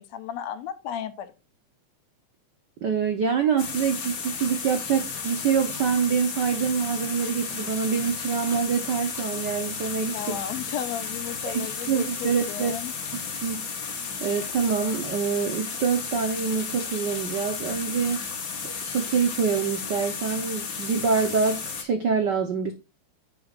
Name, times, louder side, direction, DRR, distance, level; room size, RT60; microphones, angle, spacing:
voice 1, 0.0-1.3 10.1-12.9, left 10 dB, 75° left, 2.0 m, -34 dB
voice 2, 2.8-10.4 11.5-12.7 13.4-13.6 13.9-18.2 18.6-22.7, right 6 dB, 90° right, 0.9 m, -26 dB
sound 1, 3.6-21.8, left 5 dB, 40° left, 1.3 m, -33 dB
10.0 x 8.3 x 2.4 m
omnidirectional pair, 3.3 m